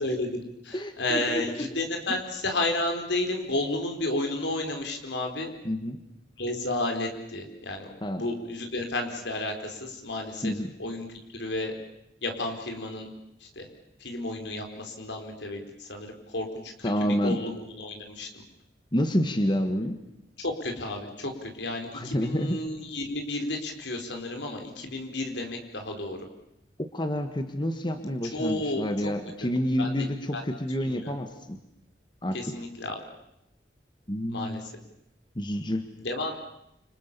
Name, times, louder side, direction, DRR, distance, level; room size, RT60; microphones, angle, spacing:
voice 1, 0.0-5.5 6.4-7.9 8.2-10.5 10.8-11.1 11.3-11.7 12.2-13.1 13.4-13.7 14.0-18.4 20.4-26.2 28.3-28.8 29.8-30.1 30.3-30.4 30.8-31.2 32.3-33.0 34.3-34.7 36.0-36.3, left 2 dB, 80° left, 4 dB, 4.5 m, -32 dB
voice 2, 0.7-1.7 5.6-6.0 8.0-8.3 10.4-10.7 16.8-17.4 18.9-20.0 21.9-22.6 26.8-31.6 32.2-32.4 34.1-34.6 35.3-35.8, equal, 25° left, 7 dB, 1.8 m, -28 dB
29.0 x 26.5 x 7.0 m, 0.85 s
head